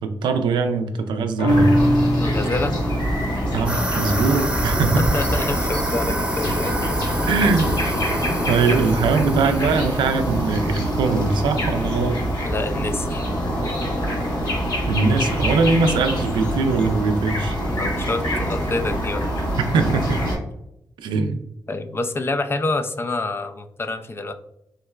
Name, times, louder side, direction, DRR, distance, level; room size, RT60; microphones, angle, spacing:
voice 1, 0.0-1.7 3.5-5.0 7.2-7.8 8.5-12.2 14.9-17.6 19.6-20.3 21.0-21.4, right 4 dB, 75° right, 7 dB, 0.4 m, -21 dB
sound 1, 1.4-8.1 8.5-8.6, equal, 85° left, 0.6 m, -25 dB
sound 2, 1.5-20.4, equal, 60° left, 1.1 m, -25 dB
voice 2, 2.2-2.8 5.0-6.8 8.7-8.9 12.4-13.3 17.6-19.3 21.7-24.3, left 2 dB, 30° left, 8 dB, 0.4 m, -27 dB
sound 3, 3.7-11.9, right 1 dB, 15° right, 0.8 m, -30 dB
3.7 x 2.1 x 2.2 m, 0.82 s
supercardioid pair, 40°, 8 cm